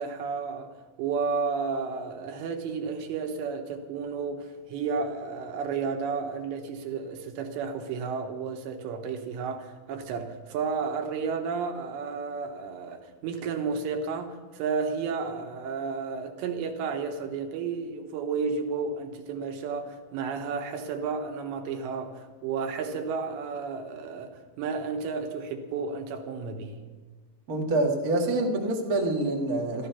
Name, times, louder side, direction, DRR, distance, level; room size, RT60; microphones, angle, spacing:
voice 1, 0.0-26.8, right 5 dB, 90° right, 3.5 m, -32 dB
voice 2, 27.5-29.9, right 2 dB, 70° right, 0.8 m, -26 dB
14.0 x 13.5 x 5.7 m
omnidirectional pair, 5.0 m